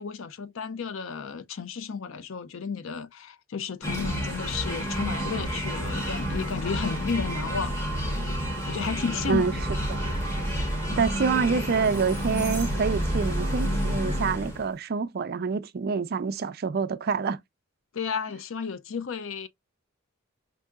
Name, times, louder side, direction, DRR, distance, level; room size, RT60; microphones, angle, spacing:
voice 1, 0.0-7.7 8.5-9.6 17.9-19.5, left 5 dB, 65° left, 0.5 m, -32 dB
sound 1, 3.8-14.7, equal, 15° left, 1.1 m, -29 dB
voice 2, 10.9-17.4, right 5 dB, 45° right, 0.4 m, -27 dB
5.4 x 2.7 x 2.3 m
head